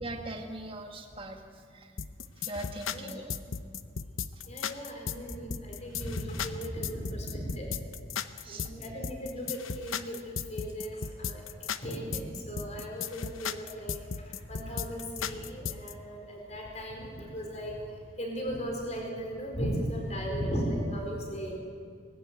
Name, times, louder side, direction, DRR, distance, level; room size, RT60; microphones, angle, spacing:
voice 1, 0.0-1.4 1.7-1.9 2.5-3.3 8.4-8.7, right 1 dB, 25° right, 3 dB, 1.7 m, -40 dB
sound 1, 2.0-15.9, left 7 dB, 85° left, 0.8 m, -36 dB
voice 2, 4.5-7.7 8.4-11.4 11.8-14.0 14.5-17.8 18.2-21.6, equal, 35° left, 0 dB, 4.4 m, -36 dB
20.5 x 15.0 x 9.3 m, 2.1 s
head